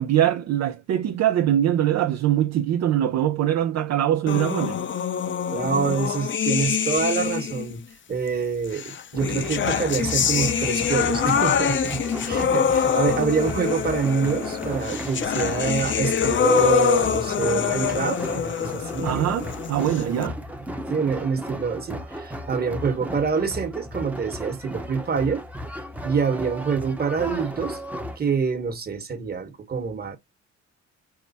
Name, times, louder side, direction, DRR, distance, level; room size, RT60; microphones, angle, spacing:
voice 1, 0.0-4.8 19.0-20.4, right 11 dB, 60° right, 0.5 m, -22 dB
sound 1, 4.3-7.7 8.7-20.3, left 8 dB, 40° left, 0.5 m, -25 dB
voice 2, 5.5-7.8 8.1-19.3 19.8-20.2 20.9-25.4 26.0-27.8 28.2-30.2, right 5 dB, 30° right, 1.2 m, -26 dB
sound 2, 9.2-28.2, equal, 5° right, 0.8 m, -35 dB
4.7 x 2.0 x 4.0 m
cardioid pair, 90°, 30 cm